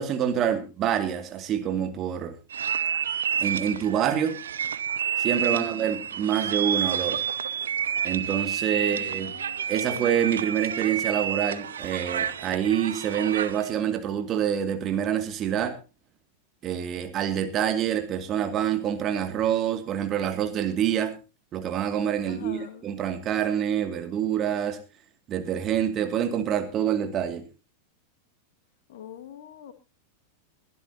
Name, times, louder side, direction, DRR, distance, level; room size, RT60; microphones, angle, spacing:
voice 1, 0.0-2.3 3.4-4.4 5.2-7.2 8.0-9.3 9.7-15.8 16.6-21.1 21.5-24.8 25.3-27.4, right 9 dB, 30° right, 8 dB, 2.3 m, -26 dB
sound 1, 2.5-13.7, right 8 dB, 65° right, 0.7 m, -29 dB
voice 2, 5.3-5.9 8.8-10.1 22.3-22.9 28.9-29.7, left 11 dB, 55° left, 8 dB, 1.9 m, -43 dB
21.5 x 12.5 x 2.8 m, 0.30 s
figure-of-eight pair, 90°, 0 cm